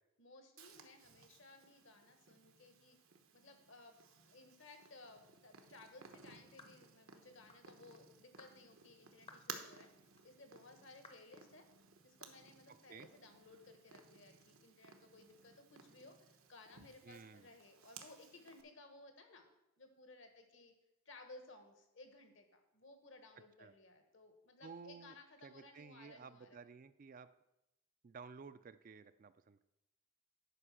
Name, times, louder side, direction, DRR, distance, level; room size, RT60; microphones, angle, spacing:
voice 1, 0.2-3.0 3.3-11.7 12.0-19.5 19.8-20.7 21.0-26.6, left 2 dB, 65° left, 5 dB, 1.4 m, -59 dB
Purr, 0.6-18.6, right 6 dB, 85° right, 1.0 m, -58 dB
sound 1, 6.6-6.8 7.5-7.7 8.4-8.6 9.3-9.5 10.2-10.3 11.0-11.3, left 3 dB, 25° left, 0.7 m, -58 dB
voice 2, 17.0-17.5 23.6-23.7 24.6-25.2 25.4-27.3 28.0-29.6, right 5 dB, 40° right, 13 dB, 0.3 m, -54 dB
9.8 x 5.1 x 6.1 m, 0.88 s
head